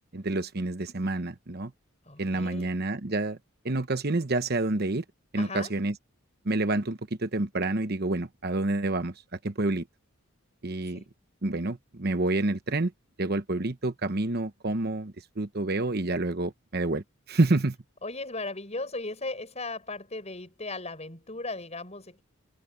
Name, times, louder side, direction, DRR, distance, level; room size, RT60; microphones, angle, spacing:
voice 1, 0.1-1.7 2.2-3.4 3.6-5.0 5.3-5.9 6.4-9.1 9.4-9.8 10.6-11.0 11.4-12.9 13.2-17.8, right 2 dB, 50° right, 1.0 m, -28 dB
voice 2, 2.1-2.7 5.4-5.7 10.9-11.1 18.0-22.2, left 2 dB, 30° left, 6.9 m, -37 dB
head